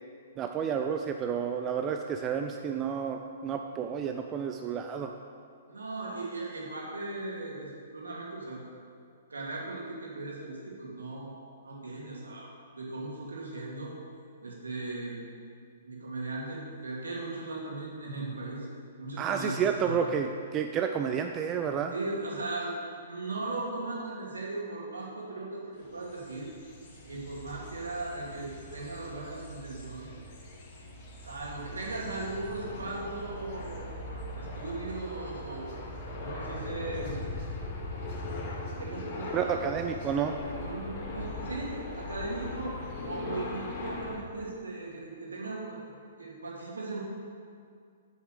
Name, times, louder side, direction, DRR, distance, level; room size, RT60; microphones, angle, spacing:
voice 1, 0.4-5.1 19.2-21.9 39.3-40.4, right 7 dB, 25° right, 5 dB, 0.5 m, -30 dB
voice 2, 5.7-8.6 9.3-14.0 14.4-15.2 15.8-18.7 19.0-19.9 21.9-22.8 23.1-26.5 27.1-30.2 31.2-35.8 36.2-37.2 38.3-39.9 40.5-47.0, right 2 dB, 75° right, -4 dB, 2.6 m, -38 dB
sound 1, 25.8-44.2, left 2 dB, 45° left, 2.2 m, -40 dB
7.9 x 7.1 x 6.7 m, 2.2 s
figure-of-eight pair, 115°, 0 cm